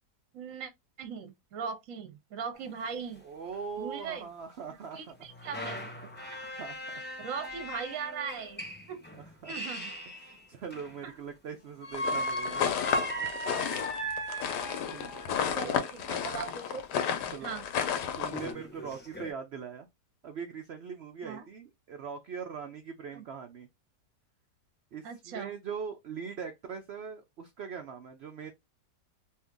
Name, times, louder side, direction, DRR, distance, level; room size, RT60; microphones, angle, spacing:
voice 1, 0.3-0.7 1.0-3.2 3.8-4.3 4.9-5.8 6.4-6.5 7.2-9.0 9.5-9.9 11.0-11.1 15.5-16.8 17.4-17.6 21.2-21.5 23.1-23.2 25.0-25.5, right 6 dB, 60° right, 0.9 m, -39 dB
sound 1, 2.5-2.6 2.8-2.9 3.5-3.6 4.9-11.1 11.8-15.5 17.2-17.3 17.8-17.9 18.2-19.3, equal, 10° left, 0.6 m, -38 dB
voice 2, 3.2-5.1 6.5-7.0 9.1-9.5 10.5-12.6 14.0-14.1 14.9-15.3 15.6-15.9 17.3-17.5 18.2-19.9 20.2-23.7 24.9-28.5, right 6 dB, 85° right, 0.5 m, -41 dB
sound 2, 11.9-18.5, left 8 dB, 80° left, 1.2 m, -32 dB
2.8 x 2.7 x 3.5 m
omnidirectional pair, 1.8 m